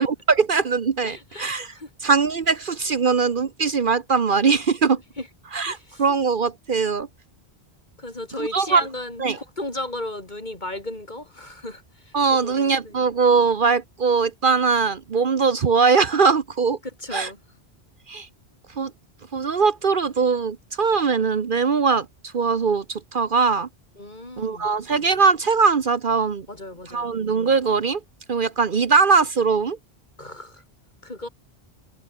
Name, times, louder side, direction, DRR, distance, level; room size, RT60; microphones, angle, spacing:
voice 1, 0.0-1.7 2.0-5.0 5.5-7.1 8.4-8.9 9.2-9.4 12.1-16.8 17.1-17.3 18.1-18.3 18.8-18.9 19.3-22.1 22.3-23.7 24.4-26.5 26.9-28.0 28.3-29.8, right 5 dB, 55° right, 1.1 m, -21 dB
voice 2, 1.0-1.9 5.2-5.3 5.6-6.0 8.0-12.1 12.4-13.0 17.0-17.4 24.0-24.7 26.5-27.1 30.2-30.6 31.0-31.3, left 1 dB, 45° left, 4.4 m, -35 dB
omnidirectional pair, 1.1 m